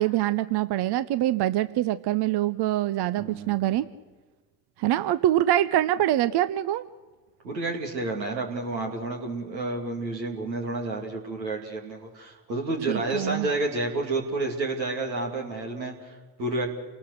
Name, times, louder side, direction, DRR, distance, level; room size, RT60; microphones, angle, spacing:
voice 1, 0.0-3.9 4.8-6.8 12.9-13.5, right 13 dB, 50° right, 15 dB, 0.7 m, -24 dB
voice 2, 3.2-3.6 7.4-16.7, right 2 dB, 85° right, 1 dB, 2.7 m, -30 dB
28.5 x 19.0 x 6.5 m, 1.3 s
figure-of-eight pair, 45°, 50 cm